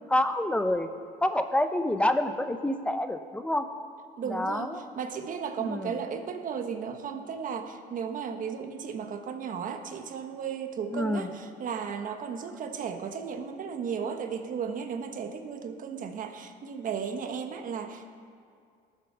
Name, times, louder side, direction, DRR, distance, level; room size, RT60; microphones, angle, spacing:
voice 1, 0.1-0.9 1.2-3.7 4.3-4.8 5.6-5.9 10.9-11.3, left 1 dB, 5° left, 9 dB, 0.8 m, -27 dB
voice 2, 4.2-18.1, right 6 dB, 50° right, 7 dB, 1.2 m, -35 dB
17.0 x 7.6 x 6.9 m, 2.3 s
cardioid pair, 110°, 17 cm